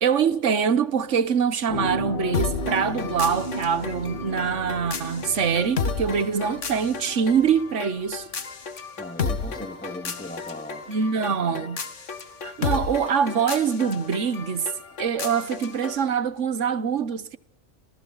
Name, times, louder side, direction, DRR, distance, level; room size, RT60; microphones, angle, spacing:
voice 1, 0.0-8.3 10.9-11.8 12.4-14.7 15.0-17.4, right 7 dB, 85° right, 1.5 m, -24 dB
sound 1, 1.7-7.7 8.1-8.2, equal, 50° left, 2.4 m, -34 dB
sound 2, 2.3-16.0, left 5 dB, 90° left, 2.1 m, -33 dB
voice 2, 9.0-10.9 11.3-11.7, left 1 dB, 5° left, 2.1 m, -39 dB
29.0 x 28.5 x 4.0 m
omnidirectional pair, 1.2 m